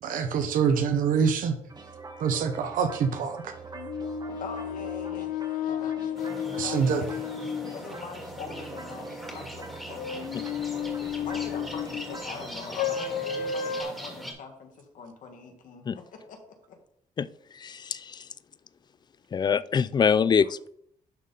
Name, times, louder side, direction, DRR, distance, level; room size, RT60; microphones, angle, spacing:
voice 1, 0.0-1.6 2.2-3.5 6.5-7.0, right 6 dB, 85° right, 0.9 m, -25 dB
sound 1, 1.7-13.1, right 3 dB, 30° right, 1.4 m, -44 dB
sound 2, 3.7-7.8 10.0-12.2 12.8-13.8, left 8 dB, 90° left, 0.6 m, -32 dB
voice 2, 4.4-5.3 5.6-5.9 6.6-7.1 7.7-10.2 11.2-15.8 16.3-16.4 16.7-16.8, left 5 dB, 75° left, 1.7 m, -42 dB
sound 3, 6.1-14.3, equal, ahead, 2.3 m, -41 dB
voice 3, 17.5-18.3 19.3-20.7, left 6 dB, 30° left, 0.3 m, -24 dB
11.5 x 4.0 x 3.8 m
cardioid pair, 105°, 14 cm